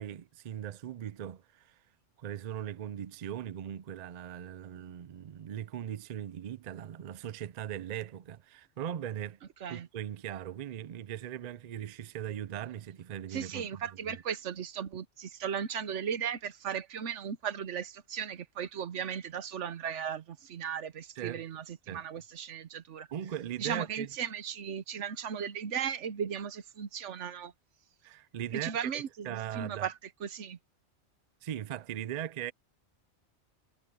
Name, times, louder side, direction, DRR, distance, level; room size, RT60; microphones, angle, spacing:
voice 1, 0.0-1.8 2.2-9.4 9.7-14.2 21.2-21.4 21.9-22.0 23.1-24.1 28.0-28.8 29.2-29.9 31.4-32.5, right 10 dB, 50° right, 0.5 m, -39 dB
voice 2, 13.3-23.1 23.6-27.5 28.5-29.9 30.2-30.6, right 8 dB, 85° right, 1.2 m, -36 dB
omnidirectional pair, 1.2 m